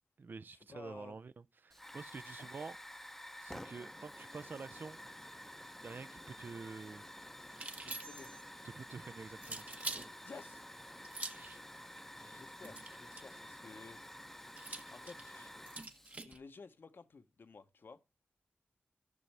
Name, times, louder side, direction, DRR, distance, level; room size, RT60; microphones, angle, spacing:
voice 1, 0.2-2.8 3.4-5.0 5.8-7.3 8.6-9.7 11.3-11.6, right 4 dB, 55° right, 0.4 m, -48 dB
voice 2, 0.7-1.2 2.4-2.5 3.6-3.8 7.8-8.3 10.2-10.6 12.1-14.0 14.9-15.5 16.2-18.0, left 4 dB, 65° left, 0.8 m, -54 dB
Hiss / Fire, 1.7-16.2, equal, 5° left, 0.6 m, -51 dB
sound 1, 7.5-8.4 9.4-10.1 11.0-11.5 12.6-13.4 14.6-16.4, right 2 dB, 40° right, 1.0 m, -45 dB
12.0 x 6.2 x 3.3 m
cardioid pair, 50°, 4 cm